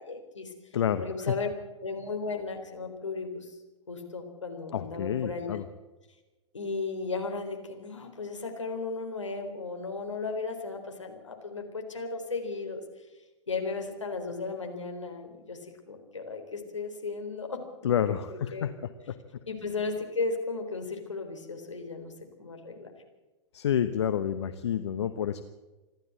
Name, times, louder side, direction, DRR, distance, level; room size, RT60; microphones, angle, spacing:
voice 1, 0.0-1.5 1.8-3.6 3.9-5.6 6.5-13.1 13.5-17.9 18.3-18.7 19.5-22.1 22.4-22.9, left 4 dB, 80° left, 4 dB, 4.0 m, -35 dB
voice 2, 0.7-1.0 4.7-5.6 17.8-18.7 19.1-19.2 23.5-25.4, left 9 dB, 65° left, 10 dB, 1.0 m, -28 dB
27.5 x 12.0 x 7.8 m, 1.2 s
figure-of-eight pair, 100°, 15 cm